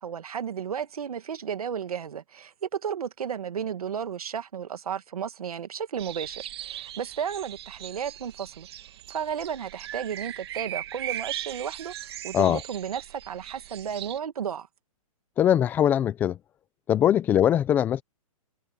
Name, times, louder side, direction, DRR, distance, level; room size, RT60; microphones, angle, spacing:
voice 1, 0.0-8.7 9.1-11.9 12.2-14.7, right 8 dB, 90° right, 1.9 m, -33 dB
sound 1, 6.0-14.2, right 13 dB, 45° right, 1.8 m, -39 dB
voice 2, 15.4-16.4 16.9-18.0, left 10 dB, 10° left, 0.6 m, -21 dB
hypercardioid pair, 165°, 18 cm